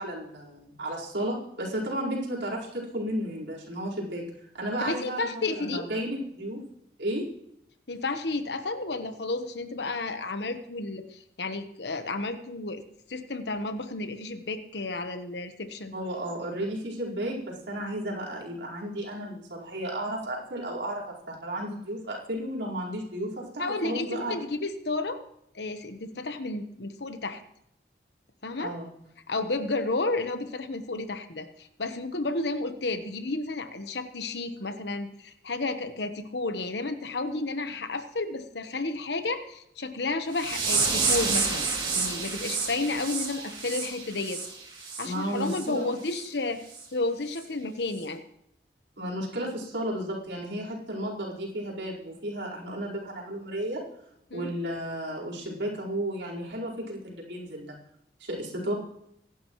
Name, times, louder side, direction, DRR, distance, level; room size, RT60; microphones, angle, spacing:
voice 1, 0.0-4.2 4.5-6.6 7.0-7.3 15.9-24.3 28.6-28.9 45.0-45.9 49.0-53.8 54.3-57.8 58.2-58.7, right 1 dB, 85° right, -4 dB, 4.6 m, -33 dB
voice 2, 4.9-5.8 7.9-12.8 13.1-15.9 23.6-25.2 25.5-27.4 28.4-28.8 29.3-41.7 42.0-44.4 45.0-46.6 46.9-48.2 54.3-54.5, left 2 dB, 70° left, 8 dB, 1.1 m, -32 dB
sound 1, 40.3-45.1 45.4-45.7 46.1-46.3 46.7-46.9 47.3-47.4, right 4 dB, 25° right, 2.7 m, -29 dB
24.5 x 11.5 x 3.1 m, 0.76 s
head